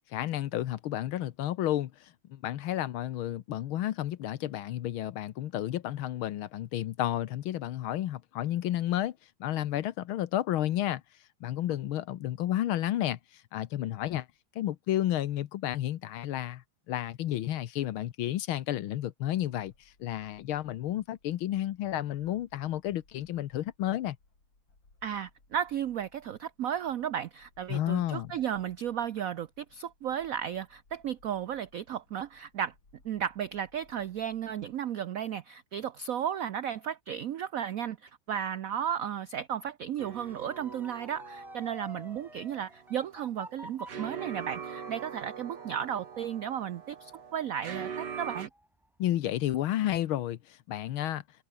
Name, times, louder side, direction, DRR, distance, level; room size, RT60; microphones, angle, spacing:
voice 1, 0.1-11.0 11.4-14.3 14.6-24.2 27.7-28.3 49.0-51.2, left 13 dB, 80° left, 1.7 m, -31 dB
sound 1, 19.3-34.8, left 3 dB, 65° left, 6.4 m, -65 dB
voice 2, 25.0-32.7 33.0-48.5, right 9 dB, 75° right, 0.8 m, -34 dB
Motor vehicle (road) / Siren, 39.9-48.9 49.3-49.7, equal, ahead, 0.8 m, -51 dB
sound 2, 40.0-48.5, right 7 dB, 55° right, 2.4 m, -43 dB
omnidirectional pair, 2.2 m